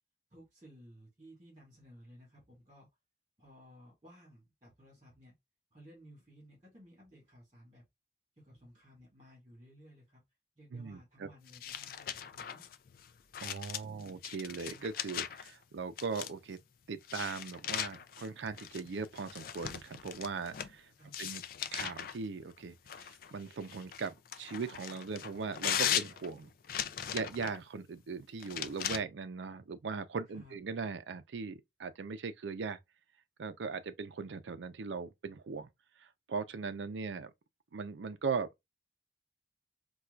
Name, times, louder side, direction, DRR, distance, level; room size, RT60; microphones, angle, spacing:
voice 1, 0.3-2.9 3.4-5.3 5.7-7.9 8.4-10.2 10.6-12.6 13.8-14.2 21.0-21.4 30.3-30.6, equal, 25° right, 1.8 m, -57 dB
voice 2, 10.7-11.3 13.4-16.6 16.9-20.9 21.2-21.4 21.7-26.5 27.1-32.8 33.4-35.7 36.3-37.3 37.7-38.5, right 5 dB, 80° right, 0.4 m, -39 dB
sound 1, 11.5-15.5 16.0-16.5 17.0-20.7 21.1-22.2 22.9-27.6 28.4-29.0, left 10 dB, 50° left, 0.3 m, -38 dB
4.3 x 2.3 x 2.4 m
head